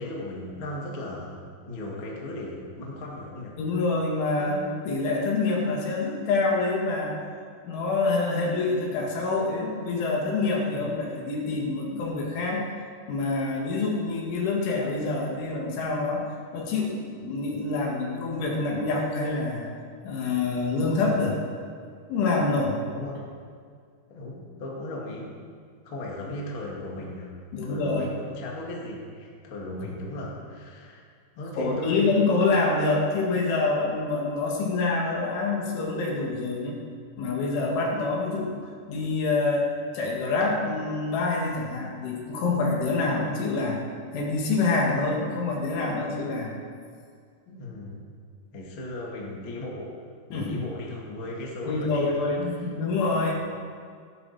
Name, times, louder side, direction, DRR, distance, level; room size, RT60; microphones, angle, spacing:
voice 1, 0.0-3.6 4.4-4.6 10.7-10.9 22.5-23.2 24.1-25.3 25.8-27.3 27.6-31.0 31.3-32.1 47.5-48.0 48.5-49.9 50.3-52.2, left 1 dB, 45° left, -3 dB, 1.8 m, -36 dB
voice 2, 3.6-7.2 7.6-12.6 13.1-16.3 16.5-19.7 20.0-21.4 22.1-22.8 27.5-28.1 29.8-29.9 31.6-36.8 37.2-38.6 38.9-39.7 39.9-43.8 44.1-46.5 50.3-50.6 51.6-53.3, left 3 dB, 75° left, -2 dB, 4.3 m, -26 dB
17.0 x 12.5 x 4.2 m, 2.1 s
omnidirectional pair, 5.6 m